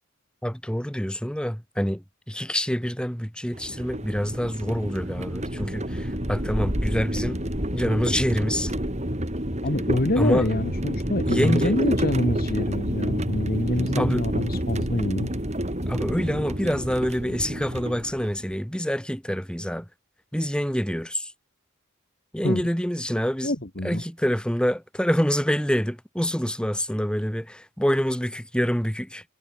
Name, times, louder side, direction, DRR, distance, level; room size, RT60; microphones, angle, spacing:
voice 1, 0.4-7.4 7.7-8.7 10.2-10.5 11.3-11.8 14.0-14.2 15.9-19.9 20.3-21.3 22.3-23.5 23.8-29.2, equal, 5° left, 7.7 m, -26 dB
sound 1, 3.5-18.5, equal, 35° right, 7.2 m, -29 dB
voice 2, 9.6-15.3 22.4-22.7 23.4-24.0, left 1 dB, 45° left, 2.6 m, -26 dB
head